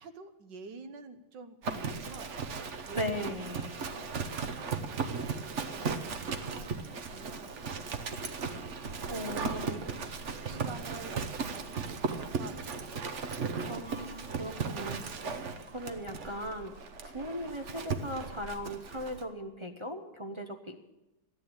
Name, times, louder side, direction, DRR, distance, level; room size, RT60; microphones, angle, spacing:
voice 1, 0.0-2.5 2.8-3.6 4.1-5.9 6.2-6.7 7.0-9.1 9.6-13.3, right 4 dB, 65° right, 8 dB, 1.6 m, -50 dB
Livestock farm animals working animals, 1.6-19.2, right 5 dB, 45° right, 1.0 m, -36 dB
voice 2, 3.0-3.7 9.1-9.9 13.7-16.8 17.0-20.8, equal, 30° right, 2 dB, 0.5 m, -38 dB
14.5 x 10.5 x 8.7 m, 0.97 s
omnidirectional pair, 2.1 m